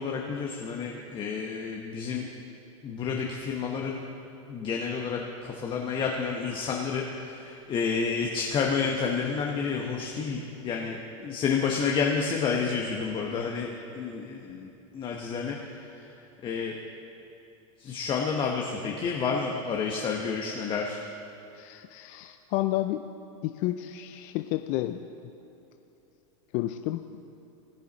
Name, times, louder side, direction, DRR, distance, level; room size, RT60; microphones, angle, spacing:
voice 1, 0.0-2.3 2.8-4.0 4.5-16.1 16.4-16.8 17.8-21.0, left 5 dB, 30° left, 0 dB, 1.0 m, -30 dB
voice 2, 21.5-23.1 23.4-25.1 26.5-27.0, left 15 dB, 50° left, 8 dB, 0.4 m, -31 dB
20.5 x 6.9 x 4.0 m, 2.8 s
supercardioid pair, 120°, 17 cm